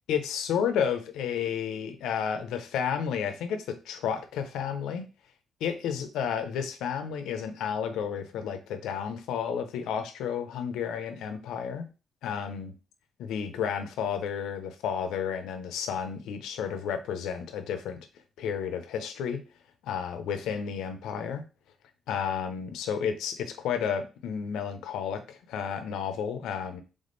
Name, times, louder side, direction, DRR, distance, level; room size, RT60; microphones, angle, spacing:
voice 1, 0.1-5.1 5.6-11.9 12.2-12.7 13.2-18.1 18.4-19.4 19.8-21.4 22.1-26.8, left 7 dB, 85° left, 8 dB, 0.7 m, -31 dB
3.6 x 3.5 x 3.9 m, 0.33 s
cardioid pair, 90°, 0 cm